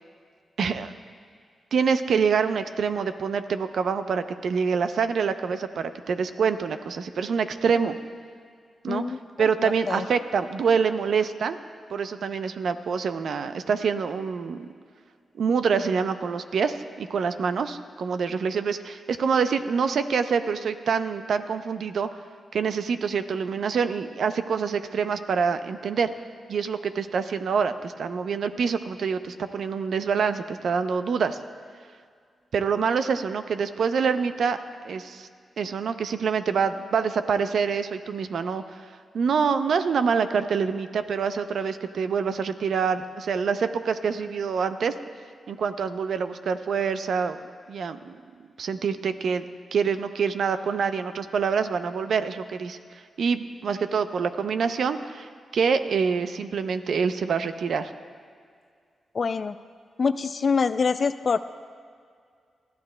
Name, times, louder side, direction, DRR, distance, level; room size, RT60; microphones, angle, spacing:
voice 1, 0.6-0.9 1.7-8.0 8.8-9.0 9.4-11.6 11.9-14.7 15.4-22.1 22.5-26.1 26.5-31.4 32.5-34.6 34.8-35.3 35.6-38.8 39.1-44.9 45.5-47.4 47.7-49.4 49.7-52.8 53.2-57.9, right 6 dB, 75° right, 10 dB, 0.5 m, -26 dB
voice 2, 8.9-9.2 9.6-10.0 59.1-59.5 60.0-61.4, left 5 dB, 55° left, 12 dB, 0.3 m, -25 dB
19.5 x 13.0 x 2.2 m, 2.1 s
cardioid pair, 55°, 0 cm